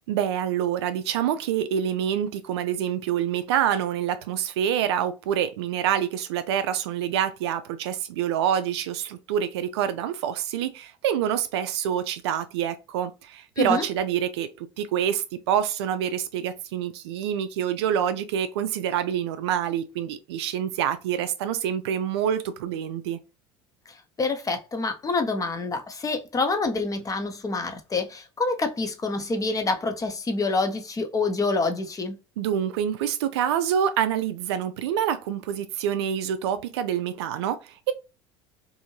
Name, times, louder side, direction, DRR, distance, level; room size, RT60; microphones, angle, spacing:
voice 1, 0.1-23.2 32.4-37.9, right 9 dB, 70° right, 0.4 m, -26 dB
voice 2, 23.9-32.2, left 3 dB, 25° left, 0.7 m, -27 dB
2.7 x 2.6 x 2.8 m
hypercardioid pair, 65°, 14 cm